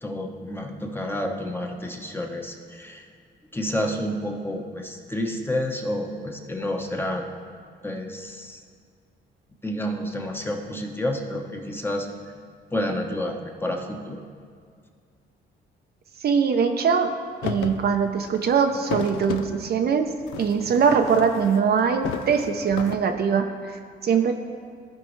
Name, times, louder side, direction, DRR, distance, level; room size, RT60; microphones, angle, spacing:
voice 1, 0.0-3.1 3.5-7.2 7.8-8.6 9.6-12.1 12.7-14.2, left 1 dB, 10° left, 1 dB, 1.0 m, -29 dB
voice 2, 16.2-17.1 17.4-20.1 20.4-24.3, right 6 dB, 55° right, 5 dB, 0.6 m, -22 dB
sound 1, 17.4-17.8 18.2-19.5 20.2-21.8 22.0-23.0, left 8 dB, 80° left, 0.5 m, -33 dB
14.5 x 5.2 x 3.1 m, 2.1 s
cardioid pair, 90°, 20 cm